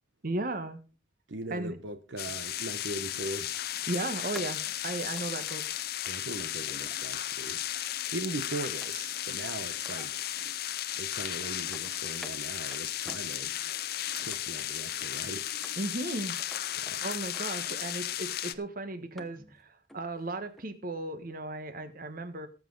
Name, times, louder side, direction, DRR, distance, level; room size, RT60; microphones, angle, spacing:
voice 1, 0.2-0.8 1.5-1.8 3.9-5.7 15.8-16.4 17.0-22.5, right 2 dB, 50° right, 1.3 m, -35 dB
voice 2, 1.3-3.5 6.0-7.6 8.1-10.3 10.9-13.5 14.2-15.4 16.8-17.0, right 2 dB, 80° right, 1.0 m, -39 dB
sound 1, 2.2-18.5, left 12 dB, 55° left, 0.6 m, -35 dB
sound 2, 3.1-3.2 4.3-7.3 8.4-9.3 9.7-10.6 11.0-12.4 12.7-13.7 14.0-15.1 15.6-16.1 16.4-17.0 17.3-18.0 18.5-18.6 18.9-19.6 19.9-20.2 20.6-20.7, left 1 dB, ahead, 1.0 m, -51 dB
18.5 x 7.5 x 3.9 m
head